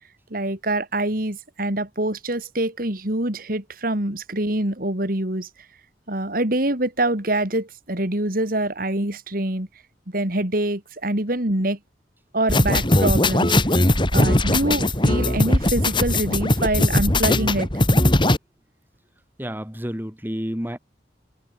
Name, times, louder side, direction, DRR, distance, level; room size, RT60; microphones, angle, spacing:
voice 1, 0.3-5.5 6.1-9.7 10.1-11.8 12.3-13.5 14.1-17.8, right 1 dB, 55° right, 3.6 m, -25 dB
sound 1, 12.5-18.4, left 1 dB, 30° left, 4.1 m, -19 dB
voice 2, 19.4-20.8, equal, 10° right, 3.3 m, -30 dB
head